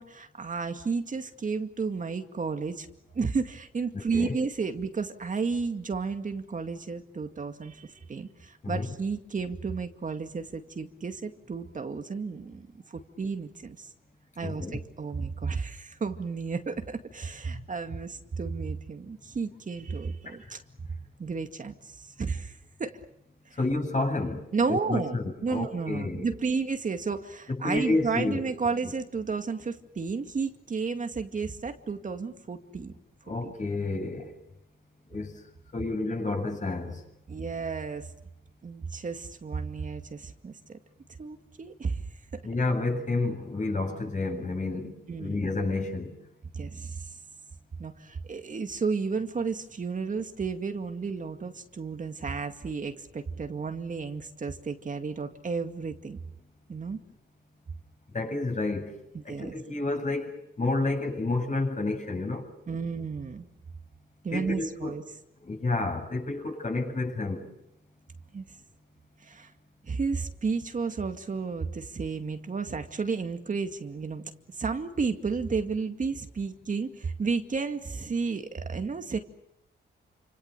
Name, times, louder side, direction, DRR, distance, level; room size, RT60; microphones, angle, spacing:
voice 1, 0.0-2.9 3.1-13.9 14.4-20.6 21.2-22.9 24.5-25.2 25.4-32.9 33.4-33.5 37.3-38.1 38.6-40.8 41.2-42.0 45.1-45.5 46.5-47.2 47.8-56.2 56.7-57.0 59.1-59.5 62.7-63.5 64.2-65.0 68.3-68.4 69.2-69.5 69.8-74.2 74.5-79.2, right 4 dB, 40° right, 2.2 m, -32 dB
voice 2, 3.9-4.4 8.6-8.9 14.4-14.8 20.3-20.4 23.6-26.3 27.5-28.4 28.8-28.9 33.3-34.4 35.1-35.4 35.7-37.0 42.4-46.2 58.1-58.9 59.2-62.5 64.3-64.9 65.4-67.5, left 2 dB, 35° left, 7.7 m, -30 dB
29.0 x 27.0 x 6.9 m
cardioid pair, 100°, 20 cm